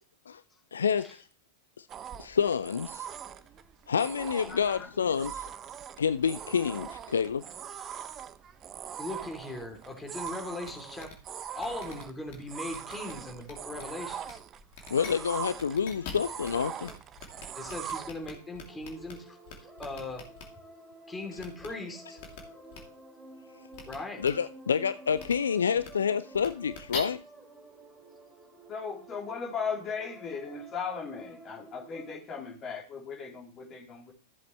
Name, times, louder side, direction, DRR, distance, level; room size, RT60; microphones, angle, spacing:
voice 1, 0.7-1.2 1.8-1.9 2.2-3.1 3.9-5.5 6.0-7.4 14.9-16.9 24.2-27.2, left 7 dB, 70° left, 0.4 m, -28 dB
sound 1, 1.9-18.1, right 9 dB, 30° right, 0.6 m, -42 dB
voice 2, 4.5-4.9 28.7-34.1, left 5 dB, 30° left, 3.4 m, -37 dB
voice 3, 9.0-11.1 11.5-14.4 17.5-19.4 19.8-20.2 21.1-22.2 23.9-24.2, left 2 dB, 10° left, 3.0 m, -39 dB
sound 2, 10.2-10.3 10.6-10.7 11.0-11.1 11.6-12.3 12.7-13.1 13.4-13.8 14.2-14.3 14.7-15.1 15.5-16.5 16.8-16.9 17.2-19.1 19.5-20.4 21.4-21.7 22.2-22.4 22.7-22.8 23.7-23.9 24.2-24.3 25.2-25.3 25.8-25.9 26.3-27.0, left 6 dB, 50° left, 2.7 m, -42 dB
sound 3, 17.6-32.2, right 1 dB, 10° right, 4.1 m, -51 dB
14.5 x 7.9 x 3.1 m
figure-of-eight pair, 90°, 0 cm